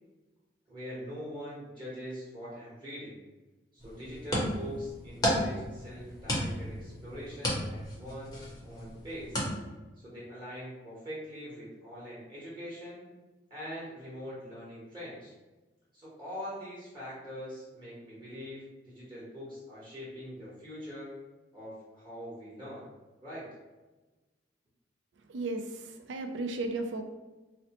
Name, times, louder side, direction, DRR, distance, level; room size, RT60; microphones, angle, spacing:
voice 1, 0.7-3.2 3.7-9.4 10.0-13.0 13.5-15.3 15.9-21.1 21.5-22.9 23.2-23.5, equal, 25° right, -9 dB, 1.1 m, -43 dB
sound 1, 3.8-9.5, equal, 20° left, 0.7 m, -34 dB
voice 2, 25.3-27.0, right 2 dB, 80° right, 5 dB, 0.4 m, -35 dB
4.0 x 2.1 x 2.8 m, 1.2 s
head